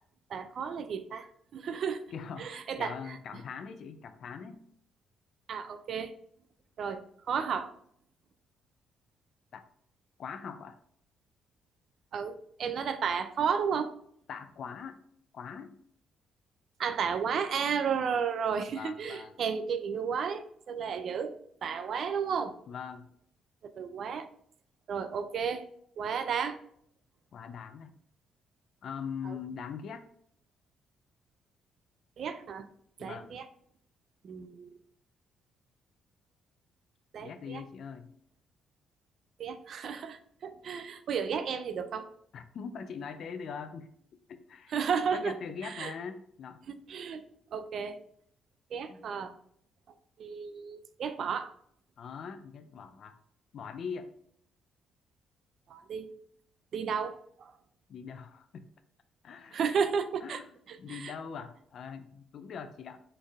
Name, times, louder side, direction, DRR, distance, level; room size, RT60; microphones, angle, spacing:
voice 1, 0.3-1.3 1.5-2.0 2.4-3.2 5.5-6.1 6.8-7.7 12.1-13.9 16.8-21.3 21.6-22.6 23.8-24.3 24.9-25.6 26.0-26.6 29.2-29.4 32.2-32.7 33.0-33.5 34.2-34.8 37.1-37.6 39.4-42.1 44.7-45.4 45.6-45.9 46.7-47.2 47.5-48.0 48.7-49.3 50.2-51.5 55.7-56.1 56.7-57.5 59.5-60.4 60.7-61.1, right 6 dB, 50° right, 9 dB, 0.4 m, -33 dB
voice 2, 2.1-4.6 9.5-9.6 10.2-10.8 14.3-15.0 15.3-15.8 18.7-19.3 22.7-23.1 27.3-27.9 28.8-30.1 33.0-33.3 37.2-38.1 42.3-43.9 44.3-44.7 45.1-46.6 48.9-49.1 52.0-53.2 53.5-54.1 57.9-58.7 59.2-59.6 60.2-60.5 60.8-63.0, left 6 dB, 50° left, 9 dB, 0.4 m, -42 dB
4.3 x 3.3 x 3.5 m, 0.67 s
cardioid pair, 140°, 0 cm